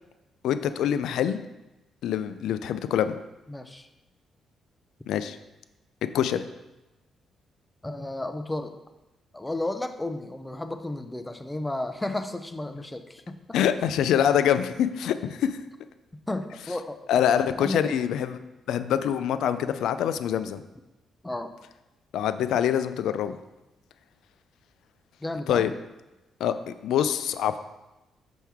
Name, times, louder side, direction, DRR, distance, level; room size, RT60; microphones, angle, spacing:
voice 1, 0.4-1.4 2.0-3.1 5.1-5.4 6.1-6.4 13.5-15.6 17.1-18.4 18.7-20.6 22.1-23.4 25.5-25.7 26.4-27.6, left 9 dB, 80° left, 12 dB, 0.4 m, -25 dB
voice 2, 3.5-3.9 7.8-8.7 9.3-13.6 16.3-17.0 17.6-17.9 21.2-21.5 25.2-25.7, left 2 dB, 15° left, 8 dB, 0.6 m, -33 dB
6.2 x 5.7 x 3.5 m, 1.0 s
cardioid pair, 70°, 0 cm